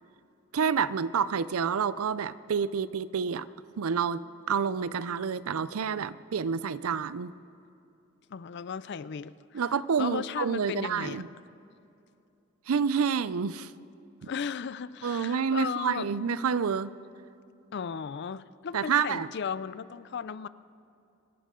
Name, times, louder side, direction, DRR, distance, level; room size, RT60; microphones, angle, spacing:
voice 1, 0.5-3.5 3.8-4.2 4.5-7.3 9.5-11.3 12.7-13.7 15.0-16.9 18.7-19.3, right 6 dB, 80° right, 17 dB, 0.5 m, -28 dB
voice 2, 8.3-9.6 10.0-11.2 14.2-16.1 17.7-20.5, left 6 dB, 50° left, 17 dB, 0.4 m, -36 dB
25.0 x 14.0 x 3.7 m, 2.7 s
head